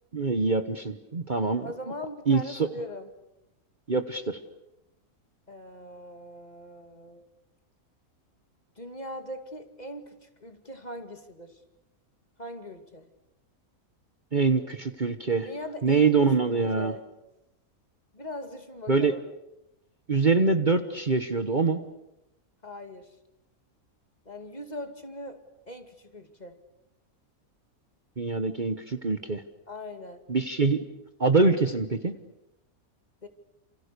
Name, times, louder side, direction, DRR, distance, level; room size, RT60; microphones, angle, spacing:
voice 1, 0.1-1.7 2.3-2.7 3.9-4.4 14.3-15.5 15.8-16.9 18.9-19.1 20.1-21.8 28.2-29.4 30.3-30.8 31.2-32.2, right 4 dB, 35° right, 8 dB, 1.3 m, -24 dB
voice 2, 1.6-3.1 5.5-7.3 8.8-11.6 12.4-13.1 15.4-17.0 18.1-19.2 22.6-23.2 24.3-25.4 25.7-26.6 29.7-30.2 33.2-33.3, left 1 dB, 30° left, 7 dB, 2.3 m, -40 dB
29.5 x 28.0 x 6.8 m, 0.87 s
omnidirectional pair, 1.5 m